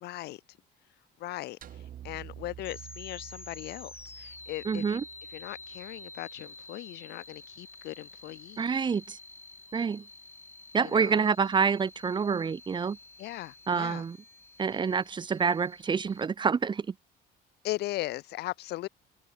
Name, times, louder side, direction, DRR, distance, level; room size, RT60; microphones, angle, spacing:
voice 1, 0.0-0.4 1.2-5.0 5.3-8.7 10.8-11.3 13.2-14.0 17.6-18.9, left 16 dB, 75° left, 1.2 m, -38 dB
sound 1, 1.6-6.0, right 11 dB, 55° right, 1.6 m, -49 dB
sound 2, 2.6-16.3, left 2 dB, 15° left, 1.8 m, -49 dB
voice 2, 4.6-5.0 8.6-9.2 9.7-10.0 10.7-13.0 13.7-14.2 14.6-16.9, right 6 dB, 25° right, 0.8 m, -27 dB
cardioid pair, 110°, 17 cm